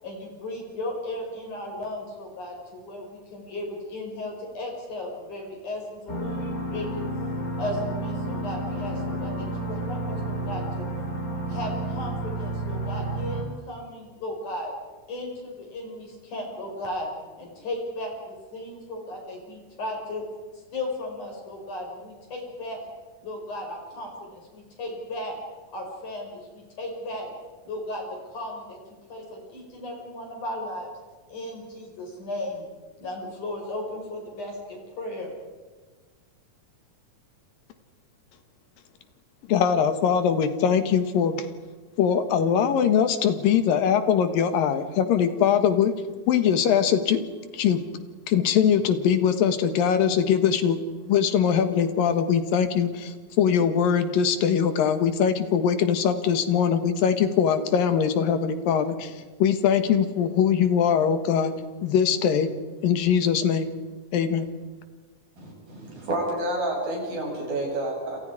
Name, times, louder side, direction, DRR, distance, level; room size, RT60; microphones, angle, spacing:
voice 1, 0.0-7.0 7.6-10.9 11.5-14.7 15.1-17.1 17.4-20.2 20.5-22.9 23.2-25.4 25.7-27.3 27.6-28.8 29.1-30.9 31.3-32.6 33.0-35.3, left 1 dB, 60° left, 0 dB, 6.8 m, -35 dB
sound 1, 6.1-13.4, right 2 dB, 25° left, 3.5 m, -31 dB
voice 2, 39.5-41.4 42.0-45.9 46.3-47.2 47.5-47.9 48.3-61.5 61.8-62.5 62.8-63.7 64.1-64.5, left 8 dB, 90° left, 9 dB, 3.3 m, -22 dB
voice 3, 65.4-68.2, right 1 dB, 85° right, -1 dB, 9.3 m, -29 dB
29.0 x 28.0 x 5.0 m, 1.3 s
omnidirectional pair, 3.9 m